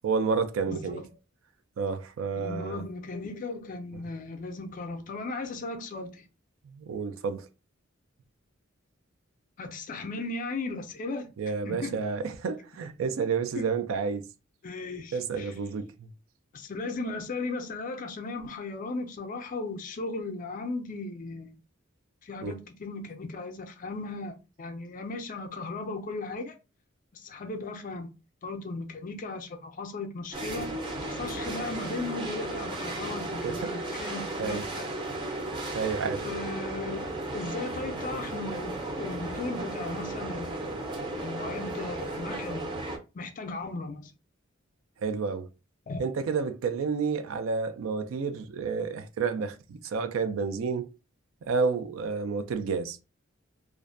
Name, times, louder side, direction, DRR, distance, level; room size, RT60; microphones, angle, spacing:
voice 1, 0.0-1.0 1.8-2.8 6.7-7.5 11.4-14.3 15.1-16.1 22.4-22.6 33.4-33.7 34.4-34.6 35.7-36.3 45.0-45.5 46.0-50.9 51.4-53.0, right 5 dB, 75° right, 0.4 m, -30 dB
voice 2, 0.6-1.0 2.4-6.2 9.6-11.3 11.6-12.0 13.6-13.7 14.6-15.5 16.5-21.6 22.2-26.6 27.1-28.1 28.4-30.7 31.0-34.9 36.2-38.7 39.0-40.7 41.2-42.7 43.1-44.1 45.9-46.0, left 3 dB, 40° left, 0.4 m, -36 dB
sound 1, 30.3-43.0, right 2 dB, 25° right, 0.5 m, -35 dB
2.4 x 2.1 x 2.5 m
head